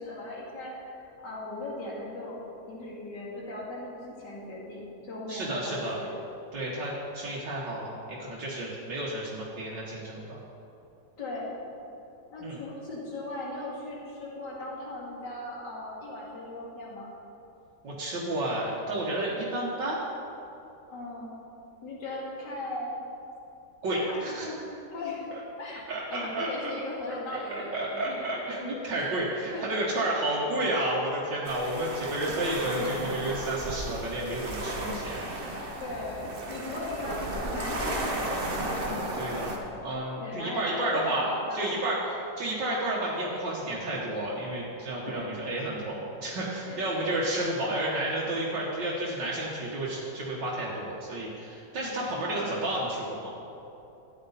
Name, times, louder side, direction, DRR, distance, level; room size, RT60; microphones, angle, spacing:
voice 1, 0.0-2.4 2.7-6.1 11.2-11.5 12.3-17.1 20.9-21.4 21.8-23.0 23.9-24.6 24.9-25.3 25.6-25.8 26.1-28.3 29.0-29.1 29.5-29.7 35.8-38.8 40.2-41.7 45.0-45.3 46.7-47.2 52.1-52.5, left 2 dB, 75° left, -5 dB, 3.0 m, -38 dB
voice 2, 5.3-6.0 6.5-10.4 12.4-12.6 17.8-20.0 23.8-24.5 25.9-26.7 27.3-27.4 27.7-35.3 39.1-39.6 39.8-53.3, right 1 dB, 80° right, -6 dB, 2.1 m, -31 dB
sound 1, 31.4-39.6, right 1 dB, 35° right, 1.2 m, -34 dB
13.0 x 10.5 x 4.1 m, 2.8 s
omnidirectional pair, 1.9 m